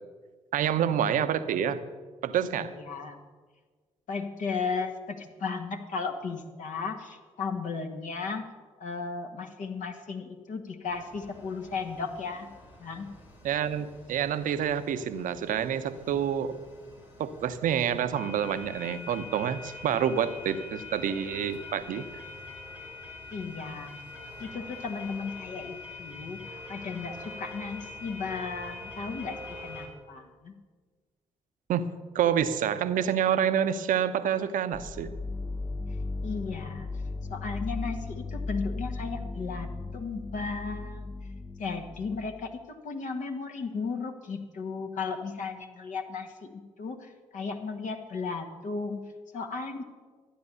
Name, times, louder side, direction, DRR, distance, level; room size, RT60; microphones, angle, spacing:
voice 1, 0.5-1.8 2.2-2.7 13.4-16.6 17.2-22.0 31.7-31.9 32.1-35.1, right 9 dB, 60° right, 11 dB, 0.9 m, -28 dB
voice 2, 2.6-3.2 4.1-8.5 8.8-12.5 12.8-13.1 23.3-24.0 24.4-26.4 26.7-30.6 36.2-36.9 37.3-41.1 41.6-49.0 49.3-49.8, left 4 dB, 55° left, 3 dB, 1.7 m, -35 dB
sound 1, 10.9-29.9, left 3 dB, 80° left, 2.6 m, -45 dB
sound 2, 34.7-42.5, left 3 dB, 20° left, 0.8 m, -36 dB
13.0 x 10.5 x 6.9 m, 1.4 s
figure-of-eight pair, 40°, 16 cm